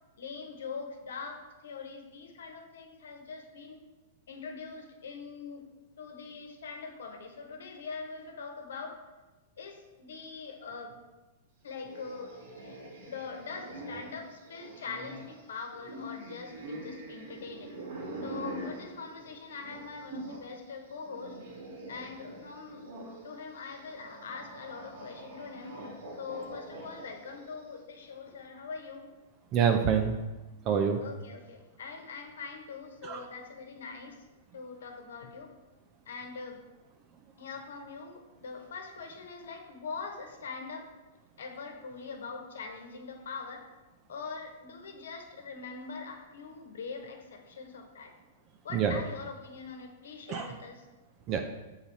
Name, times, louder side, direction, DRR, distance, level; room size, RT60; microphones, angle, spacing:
voice 1, 0.2-3.8 4.3-5.6 6.0-9.0 9.6-11.0 11.6-12.8 13.1-17.7 18.2-21.4 21.9-22.8 23.2-25.8 26.2-29.1 31.0-34.2 34.5-35.5 36.1-36.6 37.4-40.9 41.4-43.7 44.1-48.1 48.6-50.9, left 5 dB, 80° left, 4 dB, 1.1 m, -43 dB
sound 1, 11.7-20.5 20.8-27.6, right 1 dB, 75° right, 2.0 m, -44 dB
voice 2, 29.5-30.2 30.6-31.0 33.0-33.2 48.7-49.0 50.3-50.5 51.3-51.4, right 7 dB, 40° right, 4 dB, 0.5 m, -26 dB
6.8 x 4.0 x 4.2 m, 1.1 s
hypercardioid pair, 115°, 0 cm